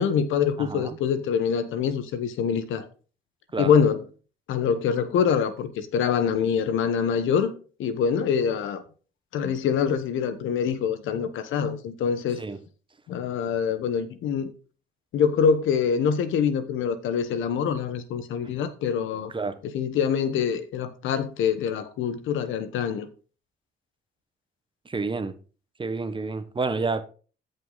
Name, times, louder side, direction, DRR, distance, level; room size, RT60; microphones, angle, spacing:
voice 1, 0.0-2.9 3.6-4.0 4.5-7.5 7.8-8.8 9.3-12.4 13.1-14.5 15.1-19.3 19.6-23.1, left 7 dB, 85° left, 1.2 m, -25 dB
voice 2, 0.6-1.0 3.5-3.7 12.4-12.6 18.4-18.5 19.3-19.6 24.8-25.3 25.8-27.0, right 3 dB, 25° right, 1.1 m, -29 dB
13.5 x 5.7 x 4.0 m
cardioid pair, 90°, 20 cm